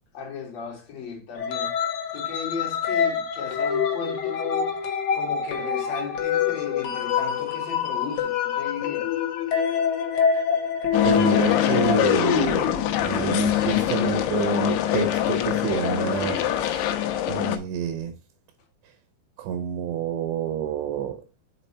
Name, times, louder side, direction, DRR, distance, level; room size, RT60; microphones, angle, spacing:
voice 1, 0.1-1.7 2.1-9.1, left 6 dB, 50° left, 2.3 m, -36 dB
sound 1, 1.4-12.0, left 7 dB, 70° left, 1.8 m, -26 dB
sound 2, 10.9-17.6, left 11 dB, 85° left, 3.2 m, -23 dB
voice 2, 11.0-16.9 17.3-18.1 19.4-21.2, right 8 dB, 80° right, 2.8 m, -28 dB
5.9 x 5.6 x 4.1 m
omnidirectional pair, 5.2 m